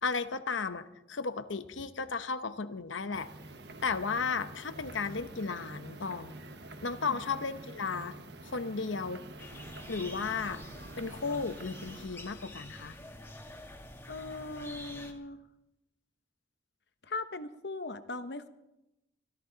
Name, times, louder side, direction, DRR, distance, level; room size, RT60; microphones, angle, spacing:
voice 1, 0.0-3.3 3.8-6.3 6.8-8.2 8.4-9.2 9.9-10.6 11.0-13.0, left 4 dB, 85° left, 11 dB, 0.9 m, -34 dB
sound 1, 3.1-12.1, right 2 dB, 60° right, 1.2 m, -47 dB
sound 2, 9.4-15.1, left 1 dB, 15° left, 1.6 m, -47 dB
voice 2, 14.1-15.4 17.0-18.5, left 3 dB, 60° left, 10 dB, 1.0 m, -39 dB
25.0 x 14.0 x 4.0 m, 0.92 s
head